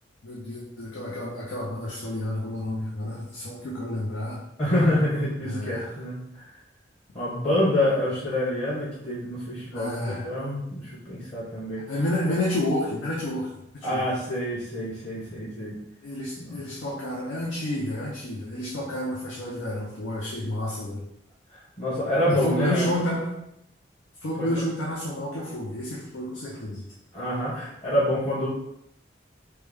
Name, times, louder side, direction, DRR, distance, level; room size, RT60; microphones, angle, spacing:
voice 1, 0.2-4.4 5.4-5.9 9.7-10.3 11.9-14.0 16.0-21.0 22.3-23.4 24.2-26.9, left 1 dB, 85° left, -4 dB, 0.5 m, -30 dB
voice 2, 4.6-6.4 7.1-11.9 13.8-15.8 16.4-16.5 21.5-22.8 24.4-24.5 27.1-28.5, left 1 dB, 35° left, -10 dB, 1.1 m, -27 dB
3.3 x 2.1 x 3.3 m, 0.77 s
head